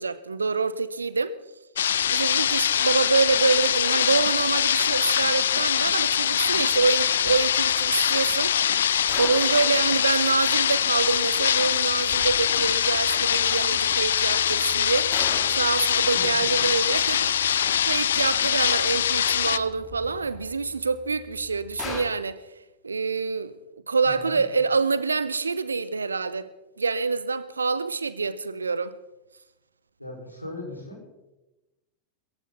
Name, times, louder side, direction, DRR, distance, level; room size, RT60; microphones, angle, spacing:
voice 1, 0.0-1.4 2.1-8.6 9.2-15.1 15.5-22.4 22.8-23.5 23.9-26.5 26.8-29.0, right 4 dB, 75° right, 0.8 m, -26 dB
sound 1, 1.8-19.6, left 9 dB, 65° left, 0.5 m, -23 dB
sound 2, 1.9-20.5, right 1 dB, 15° right, 4.8 m, -53 dB
sound 3, 6.4-22.0, left 3 dB, 30° left, 4.5 m, -44 dB
voice 2, 16.1-16.7 24.0-24.6 30.0-31.0, left 1 dB, 85° left, 5.3 m, -39 dB
21.5 x 15.0 x 4.2 m
figure-of-eight pair, 90°, 0 cm